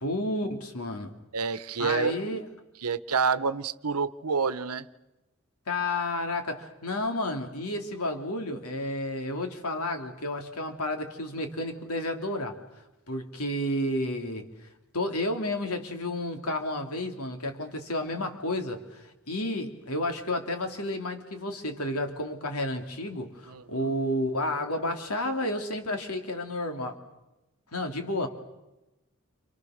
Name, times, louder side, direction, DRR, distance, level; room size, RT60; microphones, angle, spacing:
voice 1, 0.0-1.1 1.8-2.4 5.7-12.6 13.1-14.5 14.9-26.9 27.7-28.3, left 1 dB, 80° left, 5 dB, 3.2 m, -31 dB
voice 2, 1.3-2.4 2.8-4.9 23.5-23.9, right 5 dB, 90° right, 14 dB, 1.0 m, -28 dB
29.5 x 28.5 x 6.6 m, 1.0 s
head